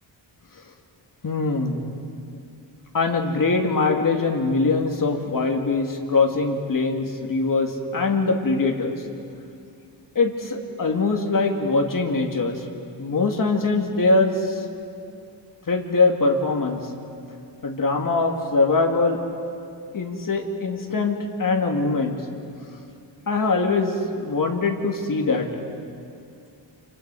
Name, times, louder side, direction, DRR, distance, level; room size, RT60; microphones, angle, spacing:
voice 1, 1.2-1.8 2.9-9.0 10.2-12.6 13.0-14.5 15.7-16.8 17.6-19.2 19.9-22.1 23.3-25.5, left 3 dB, 45° left, 2 dB, 2.4 m, -22 dB
29.5 x 28.5 x 4.9 m, 2.5 s
wide cardioid pair, 140°, 45 cm